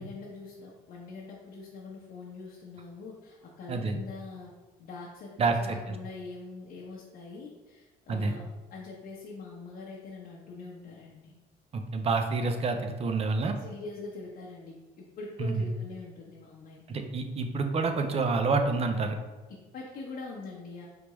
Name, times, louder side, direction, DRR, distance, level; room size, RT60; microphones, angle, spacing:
voice 1, 0.0-4.5 4.8-8.4 8.7-11.3 13.6-17.0 19.5-20.9, left 3 dB, 55° left, -4 dB, 0.8 m, -43 dB
voice 2, 11.7-13.6 15.4-15.6 16.9-19.2, right 4 dB, 35° right, 6 dB, 0.5 m, -28 dB
4.7 x 3.4 x 3.1 m, 1.2 s
cardioid pair, 110°, 17 cm